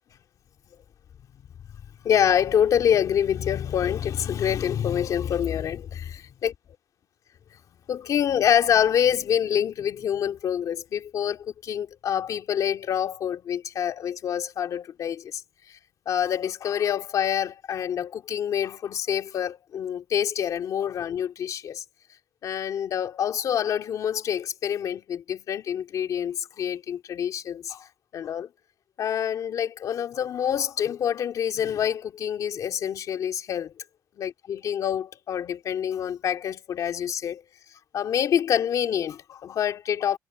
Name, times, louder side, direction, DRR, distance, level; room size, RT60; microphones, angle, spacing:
voice 1, 2.0-6.5 7.9-15.4 15.7-15.8 16.1-21.8 22.4-28.5 29.0-33.7 34.2-37.4 37.9-40.2, left 9 dB, 50° left, 2.6 m, -26 dB
cardioid pair, 160°, 7 cm